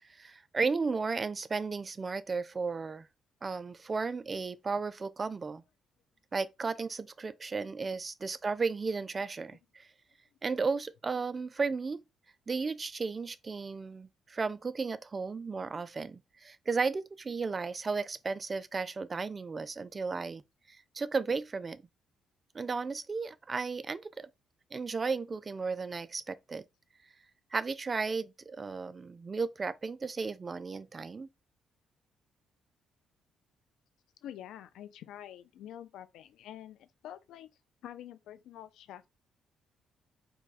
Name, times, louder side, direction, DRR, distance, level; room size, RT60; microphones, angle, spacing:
voice 1, 0.2-3.1 3.4-5.6 6.3-9.9 10.4-12.0 12.5-20.4 20.7-21.8 22.5-24.3 24.7-26.6 27.5-31.3, right 4 dB, 30° right, 0.4 m, -34 dB
voice 2, 34.2-37.5 37.8-39.1, left 11 dB, 85° left, 0.5 m, -47 dB
4.8 x 2.3 x 4.0 m
cardioid pair, 90°, 0 cm